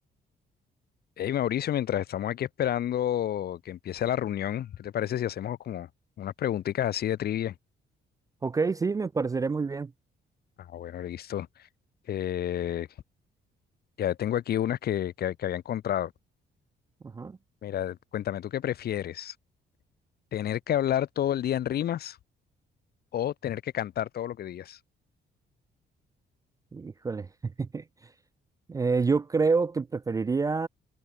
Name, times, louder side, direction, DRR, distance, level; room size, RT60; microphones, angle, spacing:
voice 1, 1.2-5.9 6.2-7.5 10.6-11.5 12.1-12.9 14.0-16.1 17.6-19.3 20.3-22.2 23.1-24.8, left 11 dB, 55° left, 1.4 m, -30 dB
voice 2, 8.4-9.9 17.1-17.4 26.7-27.8 28.7-30.7, right 4 dB, 15° right, 0.4 m, -27 dB
cardioid pair, 175°, 19 cm